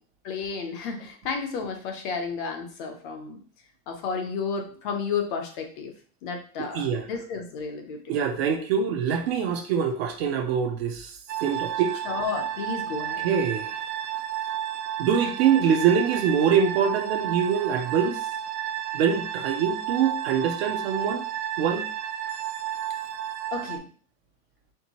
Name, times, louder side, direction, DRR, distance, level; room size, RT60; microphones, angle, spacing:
voice 1, 0.2-3.4 3.9-5.9 6.2-8.0 12.0-13.3 23.5-23.9, left 5 dB, 35° left, 5 dB, 0.5 m, -32 dB
voice 2, 6.6-7.1 8.1-12.0 13.2-13.8 15.0-18.2 18.9-21.2 21.6-21.9, right 7 dB, 40° right, 5 dB, 0.4 m, -24 dB
sound 1, 11.3-23.8, right 11 dB, 75° right, 0.7 m, -32 dB
4.5 x 3.3 x 2.8 m, 0.43 s
supercardioid pair, 160°, 48 cm